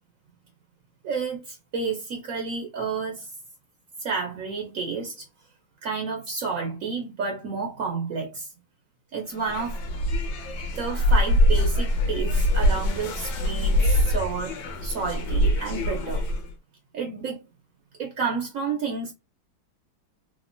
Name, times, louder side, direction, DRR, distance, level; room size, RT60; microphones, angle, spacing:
voice 1, 1.0-3.3 4.0-5.3 5.8-8.5 9.1-9.8 10.7-16.2 16.9-17.4 18.0-19.1, right 4 dB, 75° right, 0.7 m, -30 dB
sound 1, 9.3-16.5, left 1 dB, 80° left, 1.5 m, -23 dB
3.4 x 2.1 x 2.4 m
omnidirectional pair, 2.1 m